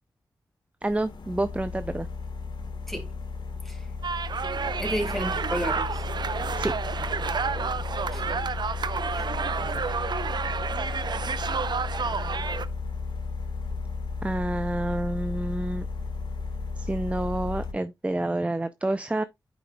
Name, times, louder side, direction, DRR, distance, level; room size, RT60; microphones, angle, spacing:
sound 1, 0.8-17.7, left 4 dB, 65° left, 1.7 m, -34 dB
voice 1, 0.8-2.1 6.5-6.7 14.2-15.9 16.8-19.2, right 1 dB, 15° right, 0.5 m, -28 dB
sound 2, 4.0-12.7, right 5 dB, 60° right, 0.6 m, -30 dB
voice 2, 4.8-6.0 8.1-8.2 9.1-9.3 9.6-10.0, equal, 5° left, 2.7 m, -32 dB
9.7 x 5.2 x 2.3 m
cardioid pair, 45°, 8 cm